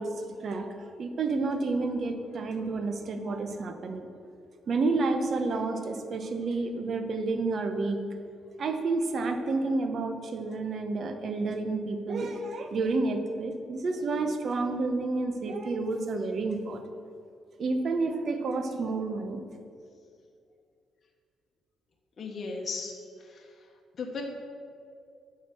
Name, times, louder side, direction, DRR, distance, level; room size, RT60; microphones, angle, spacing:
voice 1, 0.0-4.1 4.7-8.3 8.6-16.8 17.6-19.4, right 3 dB, 55° right, 7 dB, 0.9 m, -30 dB
voice 2, 22.2-22.9 23.2-23.5 24.0-24.2, left 4 dB, 45° left, 0 dB, 1.1 m, -36 dB
8.8 x 5.0 x 6.8 m, 2.4 s
cardioid pair, 90°, 0 cm